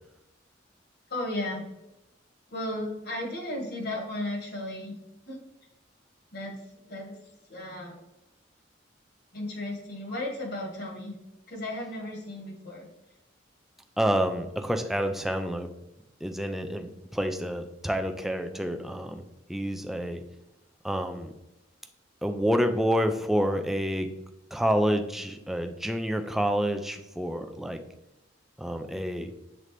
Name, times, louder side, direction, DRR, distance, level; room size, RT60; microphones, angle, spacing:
voice 1, 1.1-1.7 2.5-5.0 5.3-5.4 6.3-6.6 6.9-7.2 7.5-8.0 9.3-11.2 11.5-12.9, left 1 dB, 55° left, 0 dB, 1.8 m, -34 dB
voice 2, 14.0-15.7 16.2-20.2 20.8-21.3 22.2-24.1 24.5-27.8 28.6-29.3, equal, ahead, 5 dB, 0.4 m, -28 dB
7.4 x 3.9 x 3.3 m, 0.91 s
head